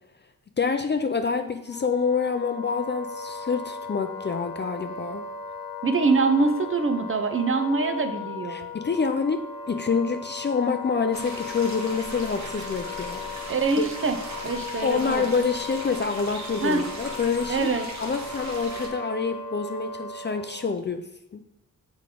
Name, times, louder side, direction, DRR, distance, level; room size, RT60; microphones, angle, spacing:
voice 1, 0.6-5.3 8.5-13.2 13.8-13.9 14.8-17.7 18.0-21.4, left 5 dB, 35° left, 7 dB, 0.4 m, -27 dB
Wind instrument woodwind instrument, 1.6-20.8, left 5 dB, 75° left, 0.7 m, -37 dB
voice 2, 5.8-8.7 13.5-14.2 14.4-15.3 16.6-16.8 17.5-17.9, right 4 dB, 40° right, 7 dB, 0.6 m, -24 dB
sound 1, 11.1-18.9, right 2 dB, 55° right, 1.2 m, -38 dB
7.7 x 4.8 x 3.7 m, 0.84 s
wide cardioid pair, 165°, 34 cm